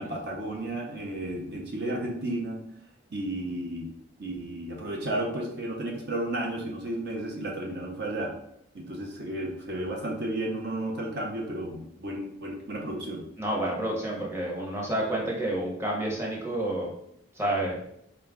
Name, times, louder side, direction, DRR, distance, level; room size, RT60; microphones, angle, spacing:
voice 1, 0.0-2.6 3.1-3.9 4.2-8.3 8.7-13.2, right 1 dB, 50° right, 0 dB, 0.6 m, -33 dB
voice 2, 13.4-16.9 17.4-17.8, right 1 dB, 10° right, -3 dB, 0.7 m, -29 dB
3.9 x 2.3 x 3.5 m, 0.73 s
head